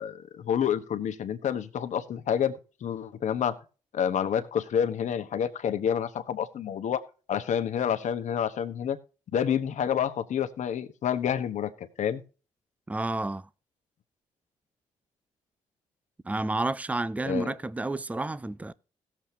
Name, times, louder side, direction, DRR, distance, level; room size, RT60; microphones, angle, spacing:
voice 1, 0.0-3.5 3.9-7.0 7.3-9.0 9.3-12.2 17.2-17.5, left 8 dB, 65° left, 1.1 m, -28 dB
voice 2, 12.9-13.5 16.2-18.7, right 2 dB, 10° right, 0.5 m, -30 dB
17.0 x 7.3 x 2.8 m
supercardioid pair, 55°, 13 cm